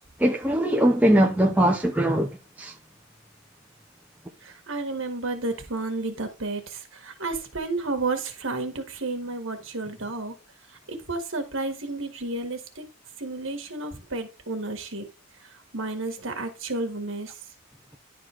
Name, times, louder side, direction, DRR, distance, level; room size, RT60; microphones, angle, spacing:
voice 1, 0.2-2.3 2.6-2.7, right 1 dB, 5° right, 0.7 m, -21 dB
voice 2, 4.4-10.3 10.9-12.8 13.2-15.1 15.7-17.3, right 2 dB, 65° right, 1.7 m, -31 dB
11.0 x 4.2 x 4.5 m
head